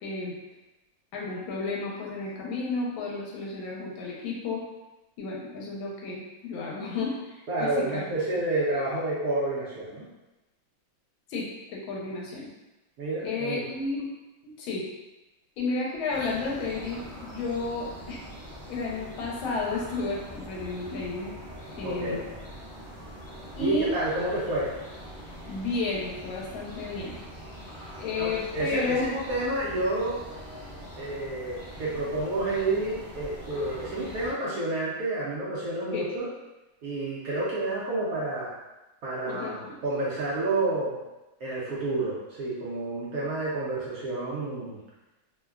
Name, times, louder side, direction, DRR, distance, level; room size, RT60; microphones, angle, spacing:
voice 1, 0.0-0.4 1.1-4.6 5.2-7.7 11.3-12.5 13.2-14.0 14.4-14.8 15.6-18.2 18.7-21.3 21.8-22.2 23.6-23.9 25.5-27.1 28.0-29.1 35.9-36.0 39.2-39.8, left 3 dB, 90° left, -3 dB, 1.4 m, -32 dB
voice 2, 7.5-10.1 13.0-13.6 21.8-22.2 23.6-24.7 28.2-30.2 31.0-36.3 36.8-38.5 39.0-41.0 41.4-44.8, right 2 dB, 80° right, -7 dB, 0.8 m, -29 dB
sound 1, 16.1-34.3, equal, 40° left, 0.8 m, -43 dB
3.2 x 2.1 x 2.3 m, 1.0 s
omnidirectional pair, 2.1 m